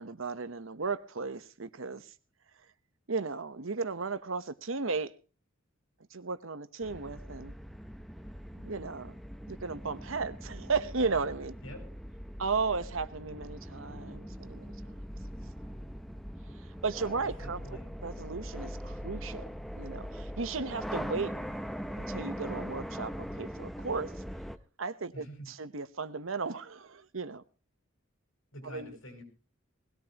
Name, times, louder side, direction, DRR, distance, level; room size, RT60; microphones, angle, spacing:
voice 1, 0.0-2.1 3.1-5.1 6.1-7.5 8.6-9.1 9.5-11.5 12.4-14.7 16.8-17.6 18.0-19.4 19.7-21.3 22.0-24.1 24.8-27.4 28.6-28.9, right 4 dB, 80° right, 1.0 m, -35 dB
sound 1, 6.8-24.6, equal, ahead, 0.7 m, -41 dB
voice 2, 17.0-17.9 25.1-25.5 28.5-29.2, equal, 85° left, 6.0 m, -46 dB
20.0 x 17.0 x 2.9 m
head